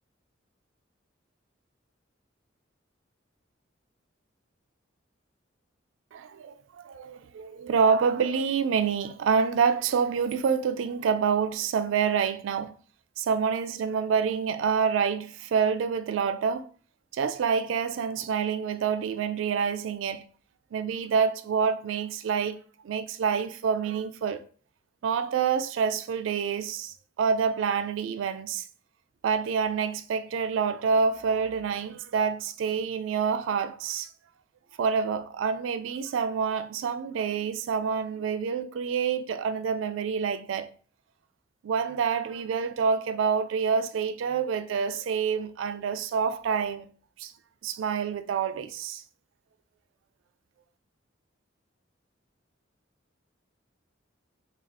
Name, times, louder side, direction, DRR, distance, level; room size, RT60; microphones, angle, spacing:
voice 1, 6.1-12.8 13.2-16.7 17.1-20.2 20.7-22.6 22.8-24.4 25.0-28.7 29.2-34.1 34.8-40.7 41.6-46.9 47.2-47.3 47.6-49.0, right 6 dB, 80° right, 0.3 m, -27 dB
3.5 x 2.3 x 3.5 m
head